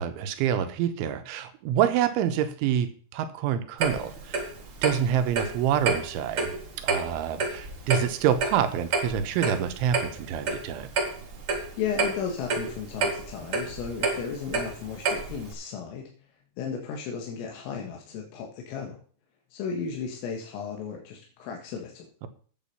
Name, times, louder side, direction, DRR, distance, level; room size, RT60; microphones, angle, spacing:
voice 1, 0.0-4.4 4.8-10.9, right 9 dB, 75° right, 9 dB, 3.3 m, -27 dB
Clock, 3.8-15.5, right 3 dB, 50° right, 1.6 m, -30 dB
voice 2, 11.8-16.1 16.6-19.0 19.5-22.1, left 6 dB, 90° left, 1 dB, 4.5 m, -34 dB
10.5 x 8.2 x 5.5 m, 0.44 s
omnidirectional pair, 5.7 m